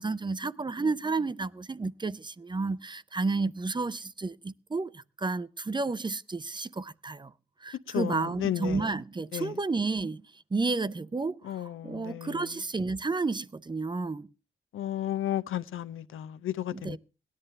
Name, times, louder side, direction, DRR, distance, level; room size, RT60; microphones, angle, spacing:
voice 1, 0.0-7.3 7.6-10.2 10.5-14.3 16.7-17.0, right 3 dB, 20° right, 0.5 m, -31 dB
voice 2, 7.9-8.8 9.3-9.5 11.5-12.3 14.7-17.0, left 12 dB, 85° left, 0.7 m, -33 dB
18.0 x 11.0 x 3.3 m
cardioid pair, 80°, 20 cm